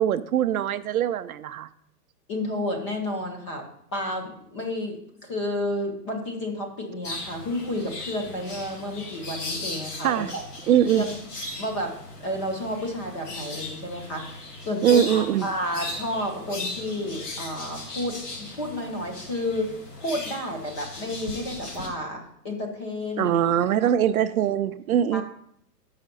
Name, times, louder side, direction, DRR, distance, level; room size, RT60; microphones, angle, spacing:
voice 1, 0.0-1.7 10.0-10.3 10.7-11.1 14.8-15.5 23.2-25.2, right 10 dB, 65° right, 11 dB, 0.5 m, -22 dB
voice 2, 2.3-3.7 3.9-10.4 10.9-11.2 11.6-14.4 14.7-19.7 20.0-23.3 23.6-23.7 24.1-24.2 25.1-25.2, left 1 dB, 20° left, 2 dB, 0.7 m, -31 dB
sound 1, 7.0-21.9, left 2 dB, 70° left, 2.3 m, -38 dB
7.1 x 5.7 x 5.2 m, 0.72 s
hypercardioid pair, 170°, 48 cm